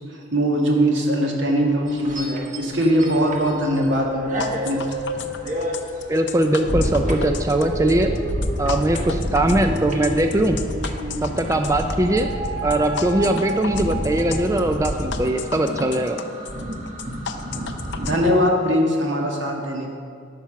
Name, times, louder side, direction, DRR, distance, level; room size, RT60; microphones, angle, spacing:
voice 1, 0.1-4.3 4.6-5.0 18.0-19.9, equal, 80° right, -1 dB, 1.8 m, -21 dB
sound 1, 1.3-11.5 12.0-14.8, right 1 dB, 65° right, 1.3 m, -32 dB
sound 2, 1.9-3.9 4.2-18.2, equal, 40° right, 1.2 m, -29 dB
sound 3, 4.4-18.1, left 7 dB, 70° left, 0.6 m, -34 dB
voice 2, 6.1-8.1 8.6-10.6 11.2-12.3 12.6-16.2, right 1 dB, 15° right, 6 dB, 0.4 m, -21 dB
12.5 x 6.0 x 5.8 m, 2.3 s
head